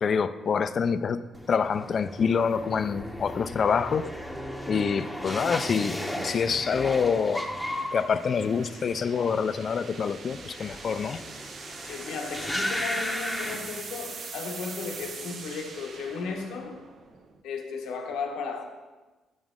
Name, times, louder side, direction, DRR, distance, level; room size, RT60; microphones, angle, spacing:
voice 1, 0.0-1.2 1.5-4.1 4.7-7.4 7.9-11.2, left 6 dB, 50° left, 13 dB, 0.3 m, -26 dB
sound 1, 1.2-17.4, right 5 dB, 60° right, 0.8 m, -45 dB
sound 2, 1.3-14.4 14.7-15.3, left 1 dB, 5° left, 0.8 m, -36 dB
voice 2, 11.8-16.9 17.4-18.6, left 5 dB, 85° left, 3 dB, 1.0 m, -35 dB
7.3 x 6.0 x 3.7 m, 1.2 s
cardioid pair, 90°, 0 cm